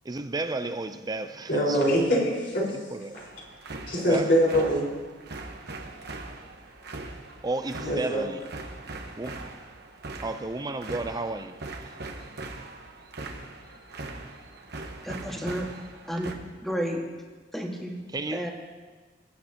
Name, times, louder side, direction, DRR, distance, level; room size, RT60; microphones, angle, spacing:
voice 1, 0.1-2.0 2.9-3.1 4.1-4.3 7.4-8.4 9.2-9.3 10.2-11.6 18.1-18.5, right 2 dB, 20° right, 0.5 m, -32 dB
voice 2, 1.5-2.7 3.9-4.9 7.8-8.3, equal, 60° left, 4.7 m, -23 dB
sound 1, 3.1-16.3, right 2 dB, 60° right, 1.2 m, -41 dB
voice 3, 15.0-15.7 16.1-16.3 16.6-17.0 17.5-18.0 18.3-18.5, equal, ahead, 1.7 m, -31 dB
21.0 x 10.0 x 2.9 m
head